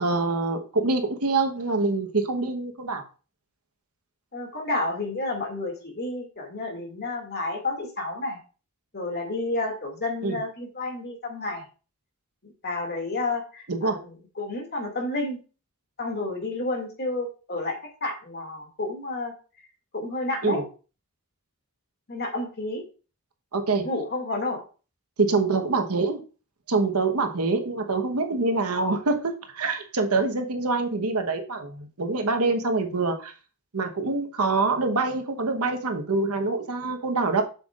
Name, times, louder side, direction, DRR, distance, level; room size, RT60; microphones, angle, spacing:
voice 1, 0.0-3.0 10.2-10.4 13.7-14.0 20.4-20.6 23.5-23.9 25.2-26.2 26.7-33.3 33.7-37.4, right 3 dB, 90° right, 5 dB, 1.1 m, -25 dB
voice 2, 4.3-8.4 8.9-11.6 12.4-15.4 16.0-19.3 19.9-20.6 22.1-22.8 23.8-24.6, left 2 dB, 50° left, 2 dB, 2.2 m, -30 dB
7.7 x 7.0 x 2.4 m, 0.35 s
head